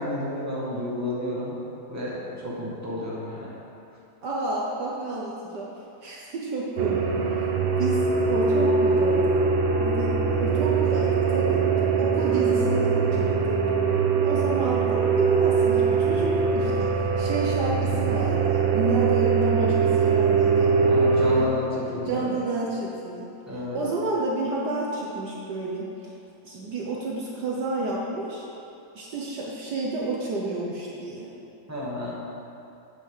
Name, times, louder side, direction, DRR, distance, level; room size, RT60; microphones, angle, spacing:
voice 1, 0.0-1.6 1.9-3.5 20.8-22.3 23.5-23.9 31.7-32.1, left 1 dB, 10° right, -7 dB, 2.0 m, -31 dB
voice 2, 4.2-5.7 6.0-7.5 7.8-11.6 12.0-13.6 14.2-21.5 22.1-23.3 23.7-26.1 26.4-28.4 28.9-31.3, right 2 dB, 60° right, -4 dB, 1.6 m, -30 dB
sound 1, 6.8-21.4, right 5 dB, 80° right, 1.6 m, -22 dB
9.1 x 6.6 x 7.3 m, 2.8 s
omnidirectional pair, 2.1 m